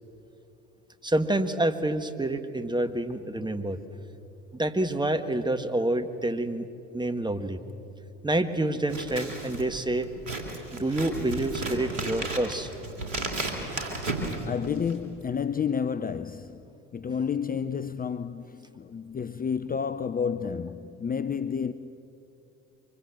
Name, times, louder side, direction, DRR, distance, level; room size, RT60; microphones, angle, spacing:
voice 1, 1.0-3.8 4.5-6.7 6.9-7.6 8.2-10.1 10.7-12.7, right 1 dB, 10° right, 1.8 m, -27 dB
Scissors, 8.8-15.1, right 2 dB, 85° right, 2.8 m, -34 dB
voice 2, 14.4-16.7 16.9-21.7, left 6 dB, 25° left, 0.7 m, -30 dB
24.5 x 23.5 x 7.8 m
hypercardioid pair, 55°, 37 cm